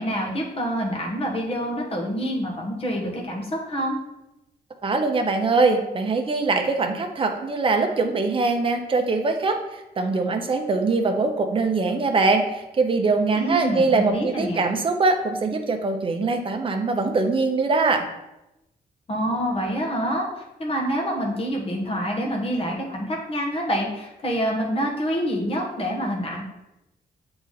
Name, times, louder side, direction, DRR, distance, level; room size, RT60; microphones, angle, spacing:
voice 1, 0.0-4.0 13.3-14.6 19.1-26.4, equal, 35° left, -1 dB, 1.4 m, -27 dB
voice 2, 4.8-18.1, right 3 dB, 30° right, 4 dB, 0.7 m, -22 dB
7.9 x 3.9 x 4.0 m, 0.93 s
wide cardioid pair, 160°, 17 cm